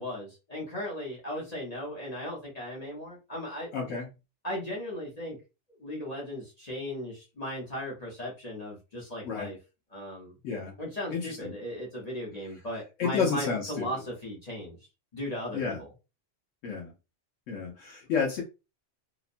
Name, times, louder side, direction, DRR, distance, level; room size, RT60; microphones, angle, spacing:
voice 1, 0.0-3.7 4.4-5.4 5.8-9.6 9.9-10.3 10.8-14.8 15.1-15.9, left 1 dB, 35° left, -4 dB, 0.9 m, -37 dB
voice 2, 3.7-4.1 9.2-9.5 10.4-10.7 11.1-11.5 13.0-13.9 15.5-15.8 16.6-16.9 17.5-18.4, left 5 dB, 90° left, -2 dB, 1.1 m, -30 dB
2.9 x 2.1 x 2.5 m, 0.28 s
omnidirectional pair, 1.2 m